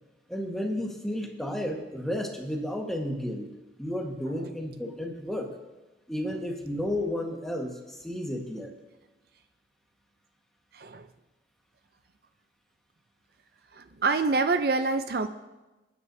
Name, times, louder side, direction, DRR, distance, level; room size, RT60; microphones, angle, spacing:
voice 1, 0.3-3.5 3.8-5.6 6.1-8.7, left 1 dB, ahead, 0 dB, 1.4 m, -32 dB
voice 2, 10.7-11.1 13.7-15.3, right 3 dB, 55° right, 9 dB, 0.5 m, -26 dB
27.0 x 9.6 x 2.7 m, 1.1 s
head